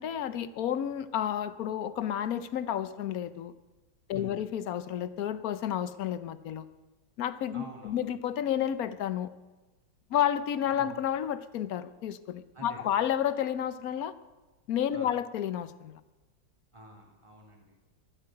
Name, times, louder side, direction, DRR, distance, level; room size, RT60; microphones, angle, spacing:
voice 1, 0.0-3.5 4.1-6.7 7.2-9.3 10.1-14.1 14.7-16.0, left 10 dB, 60° left, 14 dB, 1.1 m, -31 dB
voice 2, 7.5-8.0 10.8-10.9 12.5-13.0 14.9-15.1 16.7-17.8, right 2 dB, 15° right, 0 dB, 3.1 m, -48 dB
12.5 x 11.5 x 9.0 m, 1.1 s
omnidirectional pair, 1.9 m